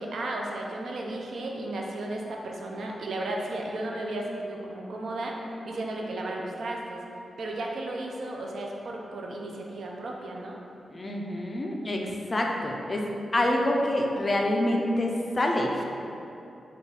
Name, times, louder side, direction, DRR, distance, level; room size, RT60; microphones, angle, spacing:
voice 1, 0.0-7.0 7.4-10.6, right 1 dB, 70° right, 0 dB, 0.4 m, -34 dB
voice 2, 10.9-13.0 13.3-15.8, left 1 dB, 25° left, 0 dB, 0.3 m, -26 dB
3.8 x 2.3 x 3.2 m, 2.8 s
wide cardioid pair, 135°, 0 cm